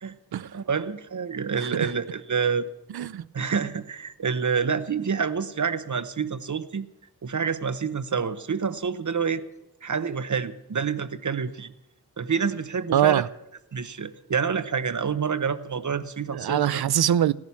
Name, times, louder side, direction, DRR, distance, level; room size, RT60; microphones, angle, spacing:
voice 1, 0.4-2.7 3.3-6.9 7.2-9.4 9.8-11.7 12.2-13.3 13.7-16.8, right 6 dB, 50° right, 0.9 m, -28 dB
voice 2, 1.6-1.9 2.9-3.2 12.9-13.3 16.3-17.3, right 10 dB, 75° right, 0.5 m, -23 dB
17.0 x 10.5 x 7.1 m
wide cardioid pair, 75°, 38 cm